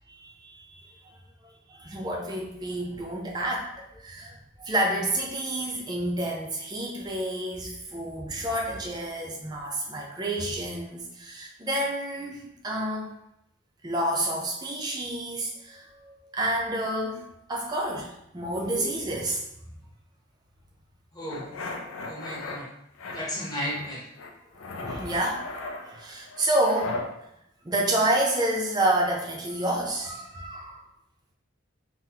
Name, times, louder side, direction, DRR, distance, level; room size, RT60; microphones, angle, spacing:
voice 1, 0.1-1.1 1.7-13.1 13.8-19.4 24.6-25.4 25.8-27.0 27.6-30.8, right 1 dB, 20° right, -2 dB, 0.5 m, -29 dB
voice 2, 18.6-18.9 21.1-21.5 22.0-22.7 23.1-24.1, equal, 20° left, -5 dB, 0.8 m, -34 dB
sound 1, 21.3-22.6 23.0-23.9 24.2-27.1, left 3 dB, 85° left, 0.4 m, -37 dB
3.8 x 2.1 x 2.8 m, 0.79 s
head